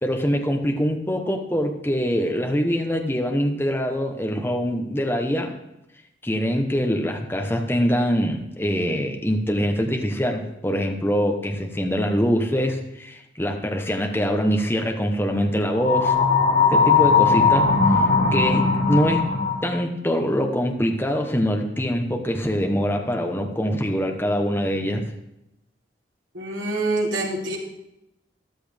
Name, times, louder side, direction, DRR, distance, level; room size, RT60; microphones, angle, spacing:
voice 1, 0.0-5.6 6.2-16.1 16.7-18.0 18.3-19.3 19.6-25.0, equal, 10° left, 2 dB, 1.1 m, -24 dB
sound 1, 15.8-19.8, left 5 dB, 45° left, 1.4 m, -19 dB
voice 2, 26.3-27.6, right 2 dB, 80° right, -4 dB, 3.4 m, -25 dB
13.5 x 12.5 x 3.5 m, 0.87 s
head